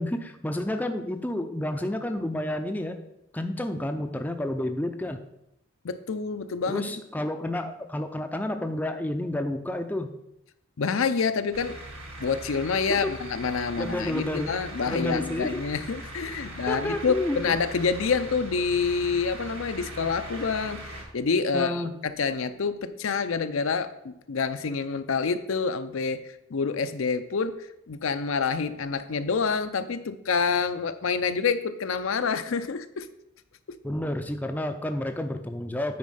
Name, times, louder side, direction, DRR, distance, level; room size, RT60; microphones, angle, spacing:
voice 1, 0.0-3.0 3.3-5.2 6.7-10.1 12.9-13.1 13.8-14.5 14.9-15.6 16.6-17.6 21.5-21.9 33.8-36.0, left 1 dB, 10° left, 6 dB, 0.5 m, -30 dB
voice 2, 5.8-6.8 10.8-11.8 12.2-33.1, left 5 dB, 70° left, 10 dB, 0.5 m, -27 dB
sound 1, 11.5-21.0, right 1 dB, 75° right, 2.1 m, -40 dB
9.5 x 4.2 x 5.6 m, 0.83 s
head